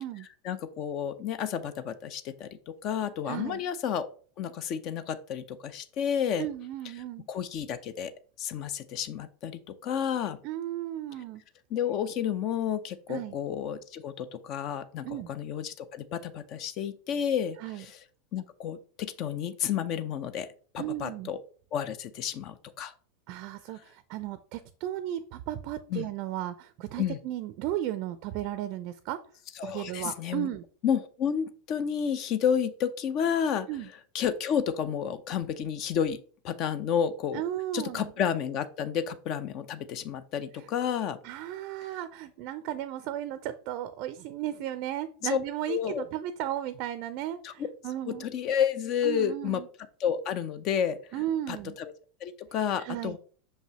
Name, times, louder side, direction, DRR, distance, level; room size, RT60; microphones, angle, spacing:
voice 1, 0.4-4.1 4.4-6.5 7.3-8.1 8.4-10.4 11.7-18.0 18.3-20.5 20.7-21.4 21.7-22.9 25.9-26.1 27.0-27.2 29.6-30.5 30.8-33.7 34.1-36.2 36.4-37.4 37.7-41.2 45.2-45.4 45.7-46.0 47.4-47.7 48.1-49.6 50.0-51.9 52.2-53.2, left 8 dB, 40° left, 12 dB, 0.6 m, -31 dB
voice 2, 3.3-3.6 6.4-7.3 10.4-11.4 13.1-13.3 15.0-15.3 17.6-17.8 20.8-21.3 23.3-29.2 29.6-30.6 33.7-33.9 37.3-38.1 41.2-48.3 49.0-49.7 51.1-51.8 52.8-53.2, right 12 dB, 45° right, 13 dB, 0.5 m, -35 dB
6.0 x 5.3 x 2.9 m, 0.41 s
figure-of-eight pair, 85°, 0 cm